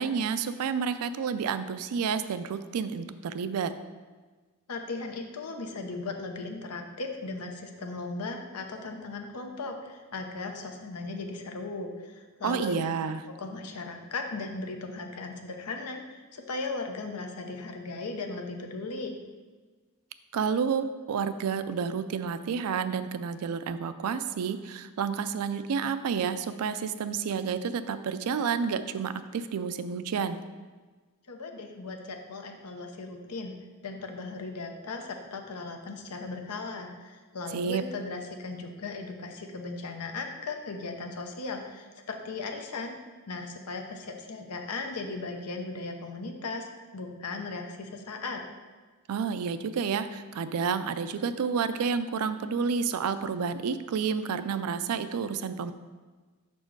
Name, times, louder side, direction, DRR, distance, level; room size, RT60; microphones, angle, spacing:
voice 1, 0.0-3.7 12.4-13.2 20.3-30.4 37.5-37.8 49.1-55.7, right 6 dB, 75° right, 12 dB, 0.4 m, -30 dB
voice 2, 4.7-12.7 13.3-19.2 31.3-33.5 33.8-43.0 43.3-46.7 46.9-48.4, left 3 dB, 90° left, 4 dB, 0.7 m, -37 dB
6.1 x 4.4 x 4.6 m, 1.4 s
head